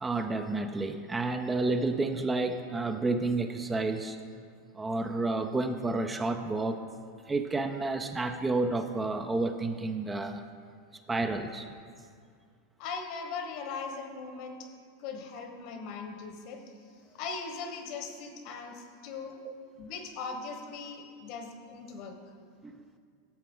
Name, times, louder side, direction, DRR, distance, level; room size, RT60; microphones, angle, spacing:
voice 1, 0.0-4.2 4.7-6.8 7.3-10.4 11.1-11.7 19.4-19.5 22.6-22.7, right 3 dB, 15° right, 7 dB, 0.5 m, -30 dB
voice 2, 12.8-16.6 17.1-19.4 19.8-22.2, left 4 dB, 55° left, 5 dB, 1.2 m, -39 dB
11.5 x 7.5 x 3.8 m, 2.1 s
hypercardioid pair, 110°, 0 cm